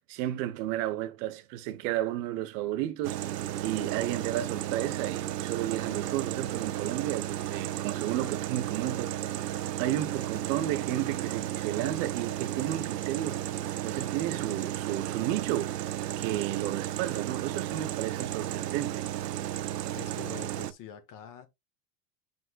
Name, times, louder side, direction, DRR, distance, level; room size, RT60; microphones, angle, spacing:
voice 1, 0.1-3.2 3.6-9.3 9.8-13.4 13.8-19.0, right 13 dB, 55° right, 0.9 m, -32 dB
sound 1, 3.0-20.7, right 12 dB, 85° right, 0.6 m, -34 dB
voice 2, 19.9-21.5, left 9 dB, 40° left, 1.5 m, -45 dB
7.7 x 5.5 x 2.4 m
hypercardioid pair, 85°, 46 cm